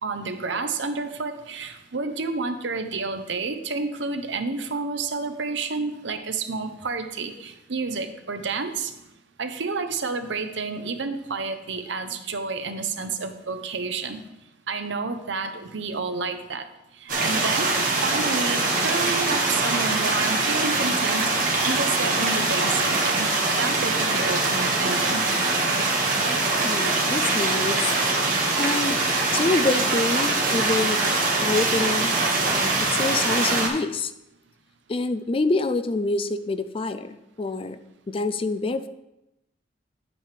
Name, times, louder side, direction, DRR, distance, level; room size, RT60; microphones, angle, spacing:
voice 1, 0.0-8.9 9.4-14.2 14.7-16.7 17.0-23.3 23.6-25.2, right 4 dB, 85° right, 8 dB, 0.8 m, -30 dB
sound 1, 17.1-33.7, right 3 dB, 50° right, 1.7 m, -23 dB
voice 2, 26.6-29.0 29.3-31.0 31.4-32.1 32.5-34.1 34.9-37.8 38.1-38.9, left 3 dB, 30° left, 12 dB, 0.4 m, -26 dB
9.0 x 8.5 x 3.4 m, 0.88 s
head